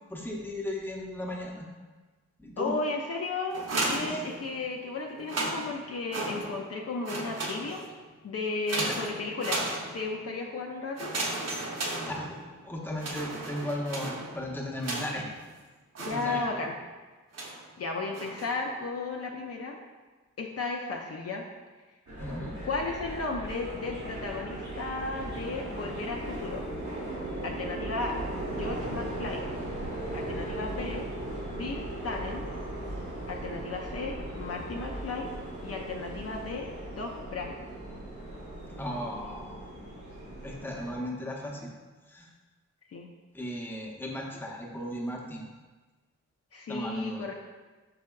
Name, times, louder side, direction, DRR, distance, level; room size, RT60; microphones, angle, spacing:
voice 1, 0.1-1.7 2.4-2.7 4.1-4.2 8.8-9.0 12.1-12.3 12.6-15.3 16.1-16.4 22.2-22.5 38.8-39.7 40.4-41.7 42.1-42.3 43.3-45.4 46.7-47.2, left 1 dB, 5° left, -2 dB, 0.6 m, -36 dB
voice 2, 2.6-7.8 8.2-11.1 16.0-16.8 17.8-19.8 20.4-21.5 22.6-26.6 27.4-28.2 28.5-29.4 30.1-31.1 31.5-32.5 33.3-35.3 35.6-37.6 42.9-43.1 46.5-47.3, left 3 dB, 55° left, 1 dB, 0.4 m, -34 dB
sound 1, 3.5-4.7 5.1-6.7 7.0-8.0 8.7-10.2 10.9-12.6 13.0-15.4 15.9-16.7 17.3-17.7 18.1-18.6, right 2 dB, 60° right, 0.7 m, -35 dB
sound 2, 22.1-41.0, right 1 dB, 90° right, 0.9 m, -37 dB
4.6 x 3.4 x 2.2 m, 1.3 s
cardioid pair, 70°, 29 cm